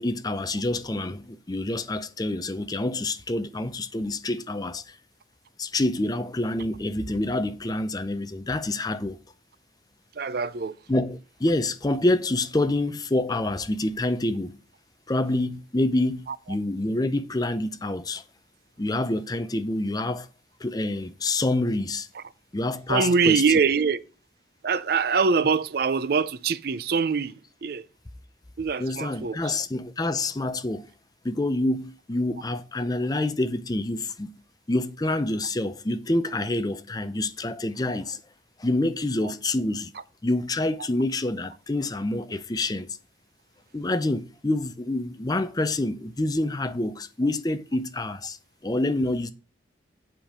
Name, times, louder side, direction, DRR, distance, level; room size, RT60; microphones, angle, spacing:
voice 1, 0.0-5.0 5.6-9.2 10.9-14.5 15.1-18.2 18.8-20.3 20.6-22.1 22.5-23.6 28.8-30.9 31.2-34.3 34.7-38.2 38.6-39.9 40.2-43.0 43.7-48.4 48.6-49.3, left 2 dB, 20° left, 0.5 m, -27 dB
voice 2, 10.2-10.7 22.9-24.0 24.6-27.3 27.6-27.8 28.6-29.4, right 5 dB, 55° right, 0.4 m, -23 dB
7.8 x 5.1 x 5.9 m
head